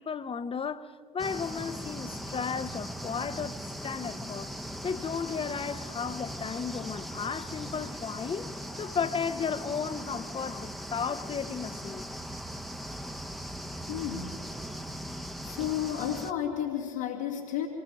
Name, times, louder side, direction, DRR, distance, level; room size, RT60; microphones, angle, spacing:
voice 1, 0.0-4.5 4.8-12.0, left 6 dB, 30° left, 1.1 m, -34 dB
sound 1, 1.2-16.3, equal, ahead, 1.1 m, -39 dB
voice 2, 13.9-14.4 15.4-17.7, left 10 dB, 80° left, 2.4 m, -32 dB
25.5 x 21.0 x 5.1 m
hypercardioid pair, 60°, 18 cm